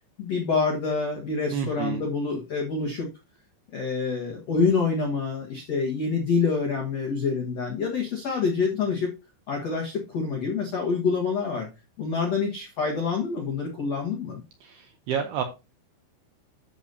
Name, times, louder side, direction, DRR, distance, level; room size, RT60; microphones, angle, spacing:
voice 1, 0.2-3.1 3.7-9.1 9.5-11.7 12.0-14.4, left 4 dB, 85° left, 0 dB, 1.4 m, -26 dB
voice 2, 1.5-2.0 14.6-15.4, right 8 dB, 80° right, 6 dB, 2.3 m, -30 dB
10.0 x 6.8 x 2.7 m, 0.27 s
omnidirectional pair, 5.6 m